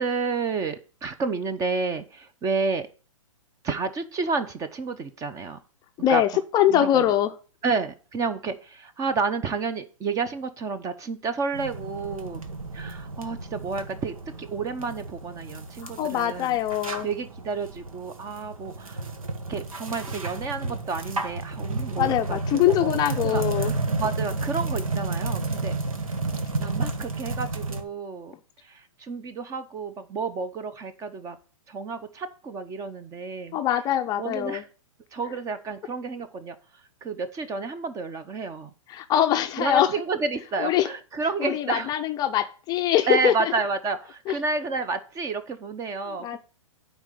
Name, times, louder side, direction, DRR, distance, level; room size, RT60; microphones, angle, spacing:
voice 1, 0.0-2.9 3.6-5.6 6.1-6.2 6.7-7.0 7.6-12.4 12.7-16.6 17.0-19.1 19.5-22.9 23.2-25.8 26.6-28.3 28.6-31.4 31.7-33.6 34.2-34.7 35.1-36.6 37.0-38.7 39.6-41.9 43.1-46.4, right 4 dB, 20° right, 12 dB, 0.8 m, -30 dB
voice 2, 6.0-7.3 15.8-17.1 22.0-23.7 33.5-34.6 38.9-39.9 40.6-40.9 41.4-43.5 44.3-44.4 46.2-46.4, left 11 dB, 25° left, 7 dB, 0.5 m, -23 dB
sound 1, 11.5-27.8, right 3 dB, 85° right, 1.5 m, -32 dB
9.3 x 4.2 x 6.8 m, 0.38 s
hypercardioid pair, 125°, 17 cm